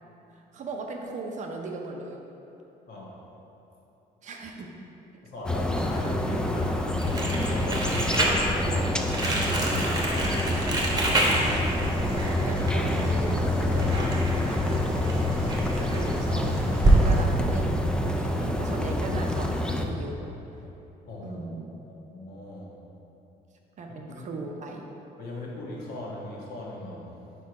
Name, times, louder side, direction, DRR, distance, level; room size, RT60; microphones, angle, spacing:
voice 1, 0.3-2.2 4.2-4.7 10.5-10.8 11.4-11.8 12.1-15.1 15.5-20.2 21.2-21.8 23.8-24.9, right 3 dB, 45° right, 1 dB, 0.6 m, -38 dB
voice 2, 2.9-3.2 5.2-6.7 7.1-9.9 21.1-21.4 21.7-22.7 24.1-24.3 25.2-27.0, left 1 dB, 65° left, -4 dB, 1.3 m, -38 dB
sound 1, 5.4-19.8, left 1 dB, 5° left, 0.3 m, -27 dB
Crumpling crinkling, 7.0-17.0, right 2 dB, 25° right, 1.0 m, -28 dB
sound 2, 9.4-17.2, right 2 dB, 85° right, 1.0 m, -43 dB
4.7 x 4.6 x 4.7 m, 3.0 s
cardioid pair, 110°, 17 cm